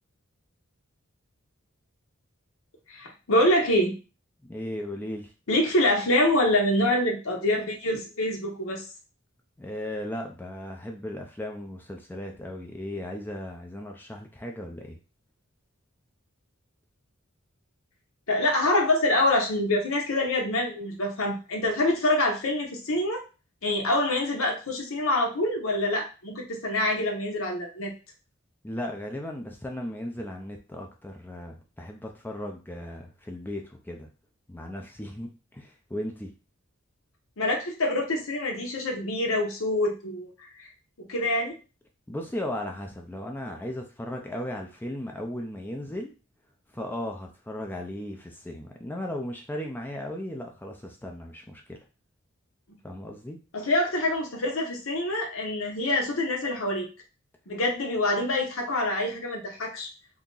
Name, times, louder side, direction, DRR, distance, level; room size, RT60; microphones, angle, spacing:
voice 1, 2.9-3.9 5.5-8.9 18.3-23.2 23.6-27.9 37.4-40.3 41.0-41.5 52.7-52.8 53.5-56.9 57.5-59.9, left 1 dB, 75° left, 2 dB, 0.8 m, -25 dB
voice 2, 4.5-5.3 9.6-15.0 28.6-34.1 34.5-35.3 35.5-36.3 42.1-46.1 46.7-51.8 52.8-53.4, left 1 dB, 10° left, 2 dB, 0.4 m, -36 dB
2.8 x 2.5 x 3.7 m, 0.33 s
head